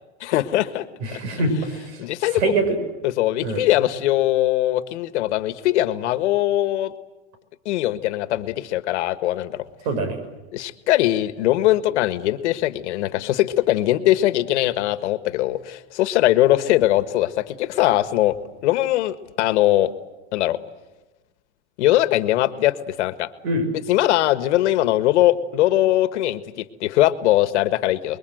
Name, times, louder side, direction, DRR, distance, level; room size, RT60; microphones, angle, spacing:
voice 1, 0.2-0.8 2.0-2.5 3.0-6.9 7.6-9.6 10.5-18.3 18.6-19.9 20.3-20.6 21.8-23.3 23.9-28.2, left 14 dB, 75° left, 11 dB, 1.6 m, -21 dB
voice 2, 1.0-2.0 2.3-2.8 3.4-3.6 9.8-10.2 23.4-23.7, right 2 dB, 65° right, 9 dB, 6.7 m, -24 dB
29.5 x 22.0 x 8.0 m, 1.1 s
supercardioid pair, 130°, 35 cm